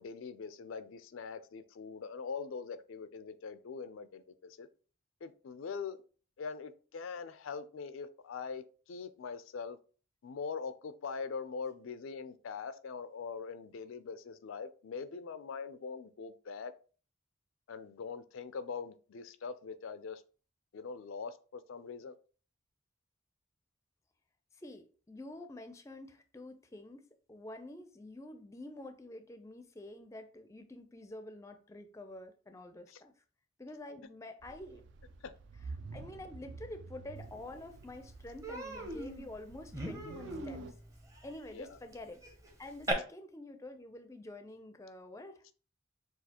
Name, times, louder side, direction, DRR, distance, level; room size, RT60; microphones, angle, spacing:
voice 1, 0.0-4.7 5.2-6.0 6.4-9.8 10.2-16.7 17.7-20.2 20.7-22.1 32.9-33.0 35.2-35.3 41.5-41.8, left 5 dB, 85° left, 0.4 m, -42 dB
voice 2, 24.5-33.1 33.6-34.8 35.9-40.6 41.2-42.2 42.6-45.5, left 1 dB, 15° left, 0.4 m, -48 dB
sound 1, 34.4-40.7, right 3 dB, 60° right, 0.4 m, -49 dB
Human voice, 37.4-37.5 37.8-38.0 38.4-42.9, right 1 dB, 15° right, 0.7 m, -41 dB
6.3 x 2.4 x 2.8 m
head